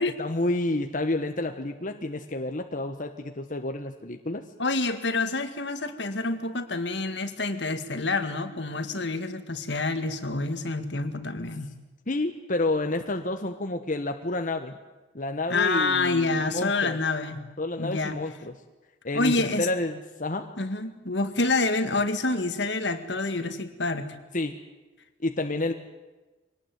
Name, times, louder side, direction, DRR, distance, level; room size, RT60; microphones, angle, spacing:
voice 1, 0.2-4.4 12.1-14.7 15.1-17.0 17.6-18.5 19.0-20.5 24.3-24.6 25.2-25.7, left 2 dB, 45° left, 5 dB, 1.3 m, -29 dB
voice 2, 4.6-11.7 15.5-17.4 17.8-18.2 19.1-19.7 20.6-24.1, left 3 dB, 70° left, 9 dB, 2.0 m, -27 dB
24.5 x 19.0 x 9.4 m, 1.2 s
head